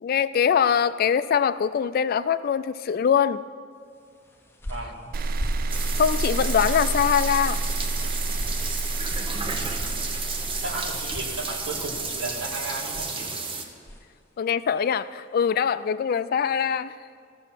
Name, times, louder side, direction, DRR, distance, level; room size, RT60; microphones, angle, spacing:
voice 1, 0.0-3.4 6.0-7.6 14.4-16.9, left 7 dB, 50° left, 14 dB, 0.3 m, -23 dB
sound 1, 4.1-14.2, equal, 10° left, 0.8 m, -41 dB
voice 2, 4.7-5.2 10.0-10.1 10.6-13.3, right 2 dB, 65° right, -1 dB, 2.0 m, -34 dB
sound 2, 5.1-12.3, right 2 dB, 50° right, 0.4 m, -30 dB
sound 3, 5.7-13.6, right 4 dB, 30° right, 1.0 m, -32 dB
15.0 x 6.8 x 5.8 m, 2.3 s
head